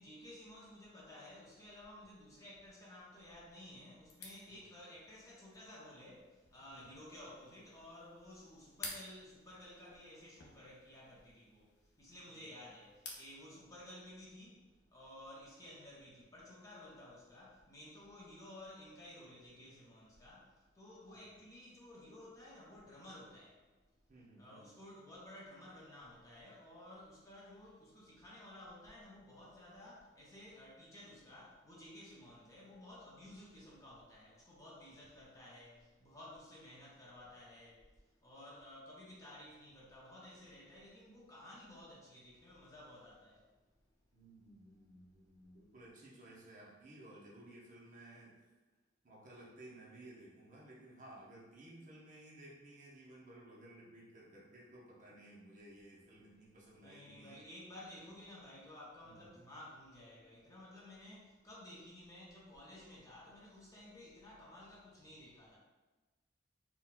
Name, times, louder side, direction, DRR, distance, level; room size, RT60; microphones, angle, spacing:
voice 1, 0.0-23.7 24.4-43.5 56.7-65.6, left 1 dB, 20° left, -5 dB, 0.5 m, -54 dB
sound 1, 4.0-13.3, left 3 dB, 65° left, 0.6 m, -54 dB
voice 2, 6.7-7.0 12.3-12.4 21.1-21.4 24.1-24.7 44.1-48.4 49.0-57.4 59.0-59.4, right 1 dB, 45° right, -5 dB, 0.7 m, -56 dB
4.0 x 2.1 x 2.2 m, 1.2 s
head